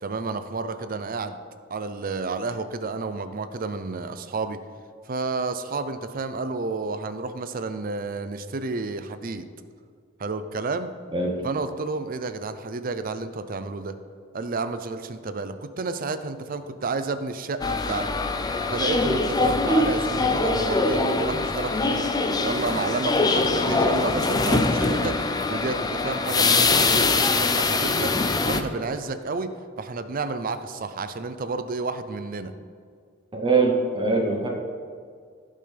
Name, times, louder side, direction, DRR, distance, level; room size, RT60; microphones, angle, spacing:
voice 1, 0.0-1.4 1.7-4.6 5.1-9.5 10.2-10.9 11.4-14.0 14.3-18.1 18.7-22.1 22.4-28.1 28.4-29.5 29.8-32.5, right 3 dB, 45° right, 10 dB, 0.5 m, -31 dB
voice 2, 11.1-11.4 33.3-34.5, right 3 dB, 25° right, 0 dB, 0.9 m, -22 dB
sound 1, 17.6-28.6, left 3 dB, 20° left, 0.5 m, -23 dB
15.5 x 5.5 x 3.4 m, 2.1 s
head